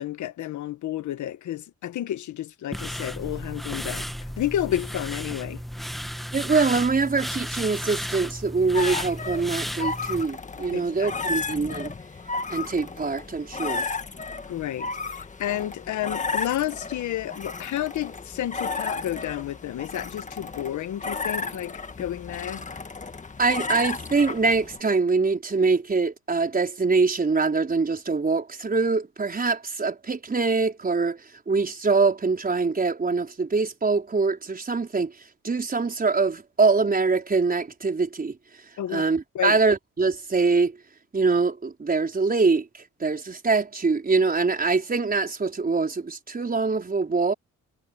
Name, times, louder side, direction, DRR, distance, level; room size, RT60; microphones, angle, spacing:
voice 1, 0.0-4.1 4.4-5.6 10.7-11.4 14.5-22.6 38.8-39.0 39.3-39.6, left 12 dB, 75° left, 1.4 m, -31 dB
sound 1, 2.7-10.2, equal, ahead, 1.4 m, -34 dB
voice 2, 6.3-11.9 12.5-13.9 23.4-35.1 35.4-38.4 38.9-40.7 41.1-42.7 43.0-47.3, right 4 dB, 30° right, 5.0 m, -24 dB
sound 2, 8.7-24.8, left 4 dB, 25° left, 1.7 m, -33 dB
cardioid pair, 90°, 30 cm